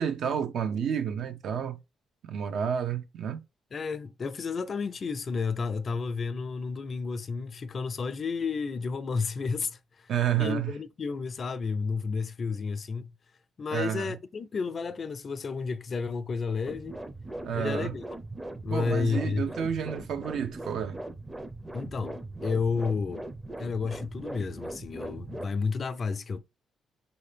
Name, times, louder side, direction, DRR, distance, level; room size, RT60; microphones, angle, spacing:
voice 1, 0.0-1.8 2.3-3.4 10.1-10.7 13.7-14.1 17.4-17.9 18.7-21.0, right 8 dB, 65° right, 0.7 m, -30 dB
voice 2, 3.7-10.1 10.4-13.1 13.6-17.0 17.5-18.0 18.6-19.5 21.7-23.3 23.6-26.4, left 5 dB, 45° left, 0.4 m, -31 dB
sound 1, 16.7-25.5, right 2 dB, 15° right, 0.6 m, -40 dB
5.6 x 2.8 x 3.3 m
cardioid pair, 90°, 0 cm